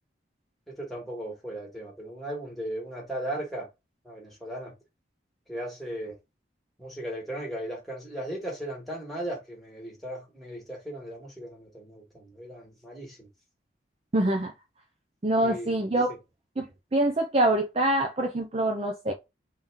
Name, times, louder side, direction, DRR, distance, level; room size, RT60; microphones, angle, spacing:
voice 1, 0.7-3.7 4.0-4.7 5.5-6.1 6.8-13.3 15.4-16.2, right 1 dB, ahead, 1.6 m, -37 dB
voice 2, 14.1-14.5 15.2-16.1 16.6-16.7 16.9-19.1, right 1 dB, 35° right, 0.5 m, -25 dB
3.6 x 2.9 x 3.5 m
head